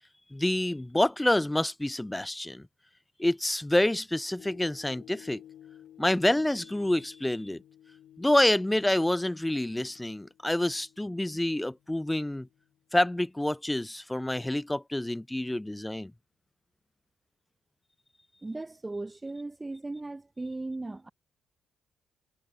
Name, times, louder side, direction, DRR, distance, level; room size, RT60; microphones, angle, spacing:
voice 1, 0.3-2.6 3.2-5.4 6.0-7.6 8.2-12.5 12.9-16.1, left 1 dB, 10° left, 0.3 m, -27 dB
sound 1, 4.4-12.8 13.3-13.4, left 11 dB, 70° left, 0.8 m, -55 dB
voice 2, 18.4-21.1, right 2 dB, 15° right, 1.0 m, -37 dB
cardioid pair, 90°, 0 cm